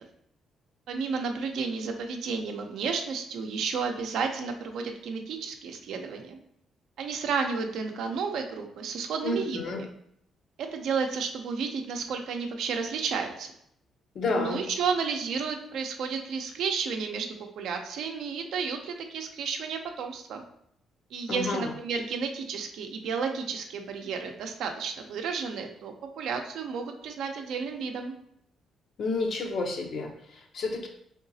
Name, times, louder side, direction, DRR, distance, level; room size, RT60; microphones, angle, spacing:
voice 1, 0.9-6.4 7.0-9.6 10.6-13.5 14.3-17.3 17.6-20.4 21.1-28.1, right 5 dB, 80° right, 4 dB, 0.5 m, -32 dB
voice 2, 9.2-9.8 14.1-14.6 21.3-21.7 29.0-30.9, left 3 dB, 60° left, 3 dB, 0.6 m, -30 dB
3.8 x 3.5 x 2.7 m, 0.72 s
cardioid pair, 90°, 0 cm